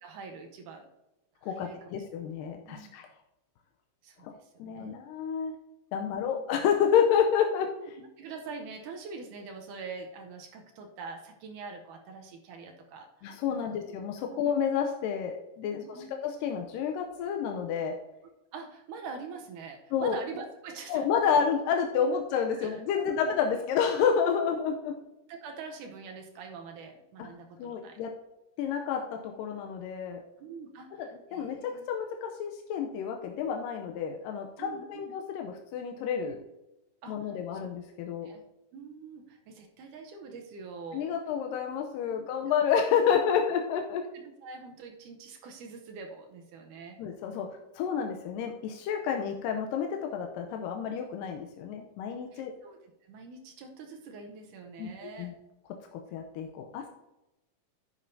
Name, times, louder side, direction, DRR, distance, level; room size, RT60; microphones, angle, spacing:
voice 1, 0.0-0.9 1.4-2.1 2.7-2.9 4.0-5.0 6.0-6.4 8.0-13.3 13.6-13.7 14.3-14.5 15.7-16.1 18.5-21.4 22.6-23.3 25.3-28.0 30.4-31.9 34.6-35.1 36.2-36.4 37.0-37.6 38.2-38.5 38.7-41.1 42.1-42.2 42.5-42.6 44.1-47.0 52.3-55.3, right 4 dB, 75° right, 4 dB, 2.3 m, -44 dB
voice 2, 1.4-3.1 4.2-4.3 4.6-5.5 5.9-7.7 13.2-18.0 19.9-20.2 20.9-25.0 27.2-27.3 27.6-28.1 28.6-30.2 30.9-36.4 37.1-38.3 40.9-44.1 47.0-47.5 47.8-52.5 54.8-54.9 55.2-55.3 55.9-56.9, left 7 dB, 90° left, 4 dB, 2.4 m, -29 dB
11.0 x 8.6 x 2.7 m, 0.95 s
omnidirectional pair, 3.8 m